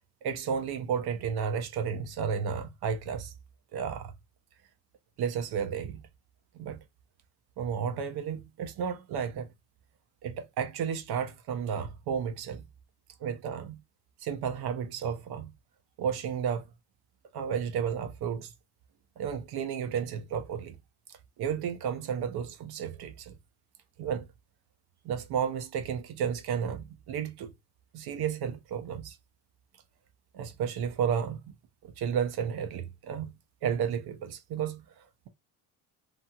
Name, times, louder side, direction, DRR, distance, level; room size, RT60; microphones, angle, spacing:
voice 1, 0.2-3.3 3.7-4.1 5.2-6.0 6.5-6.8 7.6-9.5 10.2-12.6 13.2-13.8 14.2-15.5 16.0-16.6 17.3-18.5 19.2-20.8 21.1-23.4 24.0-24.3 25.0-27.5 27.9-29.2 30.3-31.4 31.8-33.3 33.6-34.8, right 7 dB, 55° right, 0.6 m, -32 dB
2.9 x 2.6 x 2.2 m
supercardioid pair, 85°, 46 cm